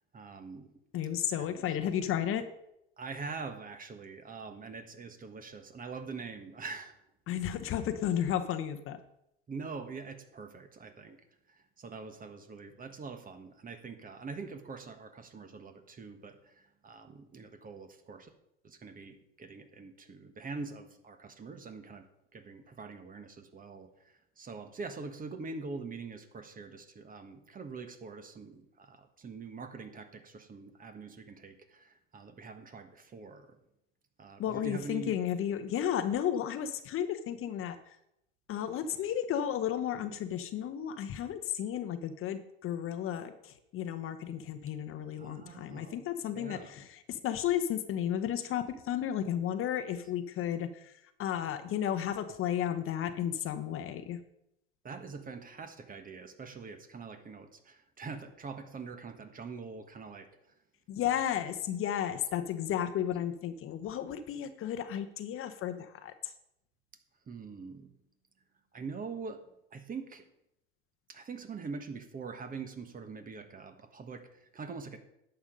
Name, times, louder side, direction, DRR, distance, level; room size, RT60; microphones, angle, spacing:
voice 1, 0.1-0.7 1.4-1.6 3.0-7.0 9.5-11.2 11.5-18.3 18.6-22.1 22.3-33.6 34.2-35.1 45.2-46.0 46.3-46.7 54.8-60.3 61.0-61.3 67.3-67.9 68.7-69.4 69.7-70.2 71.1-75.0, right 4 dB, 25° right, 8 dB, 1.4 m, -44 dB
voice 2, 0.9-2.4 7.3-9.0 34.4-38.0 38.5-54.2 60.9-66.3, left 10 dB, 40° left, 10 dB, 1.0 m, -33 dB
11.0 x 7.0 x 5.2 m, 0.81 s
hypercardioid pair, 90°, 32 cm